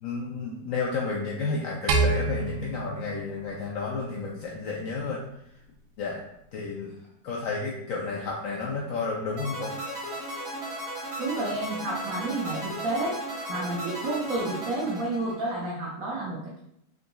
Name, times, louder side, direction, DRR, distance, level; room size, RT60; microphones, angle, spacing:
voice 1, 0.0-5.2 6.0-6.2 6.5-7.0 7.2-9.8, left 4 dB, 80° left, -2 dB, 0.7 m, -31 dB
sound 1, 1.9-4.3, right 3 dB, 80° right, 1.2 m, -28 dB
sound 2, 9.4-15.7, right 1 dB, 40° right, 1.5 m, -36 dB
voice 2, 11.2-13.2 13.5-16.6, right 2 dB, 60° right, -4 dB, 1.0 m, -30 dB
3.8 x 3.7 x 2.3 m, 0.77 s
omnidirectional pair, 1.9 m